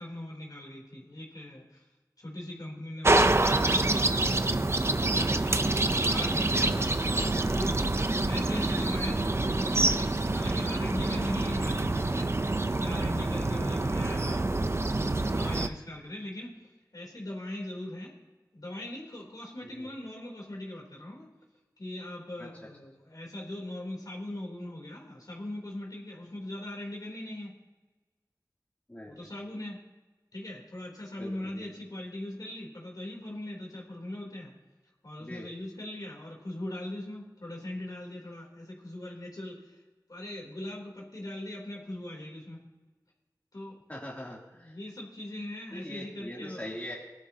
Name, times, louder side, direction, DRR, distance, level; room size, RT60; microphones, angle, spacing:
voice 1, 0.0-1.9 2.2-4.3 5.4-7.0 7.4-7.8 8.2-16.5 16.9-18.1 18.5-21.3 21.8-27.6 29.0-29.8 30.3-34.5 35.0-39.8 40.1-42.7 43.5-43.8 44.6-46.7, left 1 dB, 65° left, -2 dB, 3.4 m, -40 dB
sound 1, 3.0-15.7, right 2 dB, 40° right, 0.6 m, -26 dB
voice 2, 28.9-29.3 31.2-31.7 35.2-35.4 43.9-44.7 45.7-47.0, left 1 dB, 20° left, -4 dB, 2.9 m, -42 dB
19.5 x 11.5 x 2.9 m, 1.2 s
wide cardioid pair, 65°, 7 cm